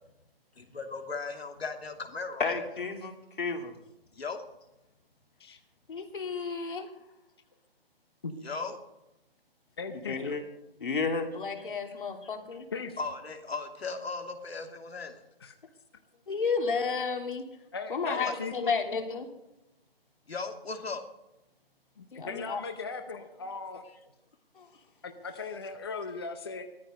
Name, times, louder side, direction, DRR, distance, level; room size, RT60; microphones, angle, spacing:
voice 1, 0.6-2.4 4.1-4.4 8.4-8.8 13.0-15.2 18.2-18.3 20.3-21.0, left 4 dB, 90° left, 5 dB, 2.8 m, -37 dB
voice 2, 2.4-3.1 3.4-3.7 5.9-6.9 10.1-10.4 10.8-12.7 16.3-17.5 17.9-19.3 22.1-22.6 24.6-24.7, left 4 dB, 55° left, 4 dB, 2.9 m, -32 dB
voice 3, 9.8-10.4 12.7-13.0 15.4-15.5 17.7-18.7 22.0-23.8 25.0-26.6, left 4 dB, 25° left, 6 dB, 0.8 m, -38 dB
16.5 x 14.0 x 5.3 m, 0.94 s
hypercardioid pair, 175°, 30 cm